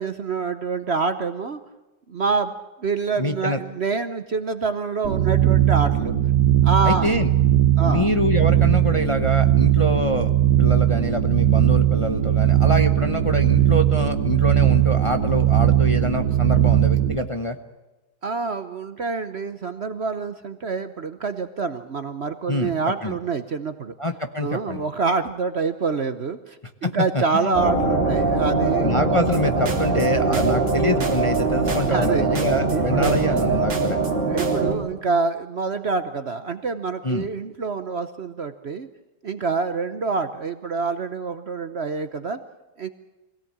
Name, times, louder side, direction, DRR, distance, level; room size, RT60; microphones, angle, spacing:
voice 1, 0.0-1.6 2.1-2.5 2.8-6.1 6.6-7.1 7.8-8.1 18.2-23.9 24.4-29.0 30.3-30.4 31.9-32.2 32.7-33.1 34.3-38.9 39.2-42.4 42.8-42.9, right 4 dB, 50° right, 10 dB, 1.0 m, -26 dB
voice 2, 3.2-3.6 6.8-7.3 7.8-10.3 10.6-17.6 22.5-22.7 23.0-23.2 24.0-24.8 26.8-27.6 28.8-34.0 37.0-37.3, left 1 dB, 25° left, 6 dB, 0.9 m, -25 dB
sound 1, 5.0-17.2, right 12 dB, 90° right, 1.7 m, -19 dB
sound 2, 27.5-34.7, right 3 dB, 35° right, 3.8 m, -22 dB
sound 3, 29.3-30.1 30.3-31.4 31.7-32.8 33.0-34.1 34.4-34.7, right 4 dB, 70° right, 2.8 m, -35 dB
24.0 x 17.5 x 8.7 m, 1.1 s
omnidirectional pair, 1.8 m